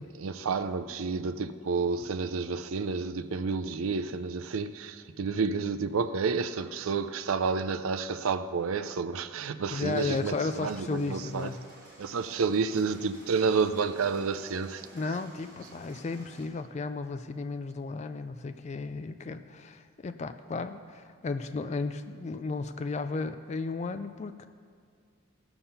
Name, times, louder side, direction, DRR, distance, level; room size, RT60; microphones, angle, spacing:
voice 1, 0.0-11.5 12.0-14.9, right 5 dB, 80° right, 0.5 m, -30 dB
voice 2, 9.7-11.6 14.9-24.5, left 3 dB, 30° left, 0.3 m, -34 dB
sound 1, 9.7-16.5, equal, 20° right, 3.7 m, -53 dB
15.5 x 6.9 x 5.6 m
head